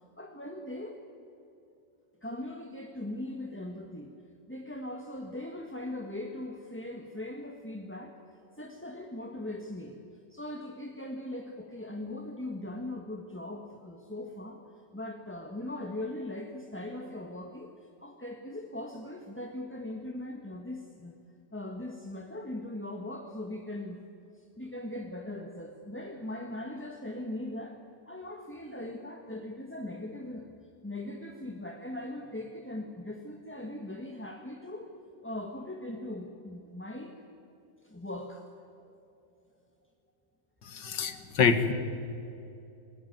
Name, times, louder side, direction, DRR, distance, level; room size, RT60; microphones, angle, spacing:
voice 1, 0.2-1.0 2.2-4.1 4.5-10.0 10.3-14.7 14.9-17.7 18.0-21.2 21.5-24.0 24.3-30.5 30.8-34.9 35.2-37.2 37.8-38.4 38.8-38.9, left 1 dB, 5° left, 2 dB, 1.4 m, -40 dB
voice 2, 40.7-41.7, left 6 dB, 70° left, 10 dB, 2.2 m, -26 dB
27.0 x 19.5 x 9.4 m, 2.7 s
omnidirectional pair, 2.0 m